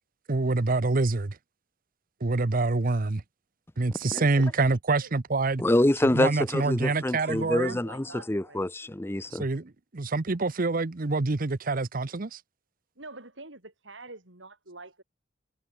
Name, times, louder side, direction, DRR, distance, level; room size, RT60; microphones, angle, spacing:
voice 1, 0.3-1.4 2.2-3.2 3.8-5.6 6.1-7.8 9.3-12.4, right 3 dB, 45° right, 0.8 m, -26 dB
voice 2, 4.1-4.5 5.0-5.1 6.9-8.7 13.0-15.0, right 3 dB, 70° right, 5.7 m, -45 dB
voice 3, 5.6-9.4, left 1 dB, 10° left, 0.6 m, -26 dB
head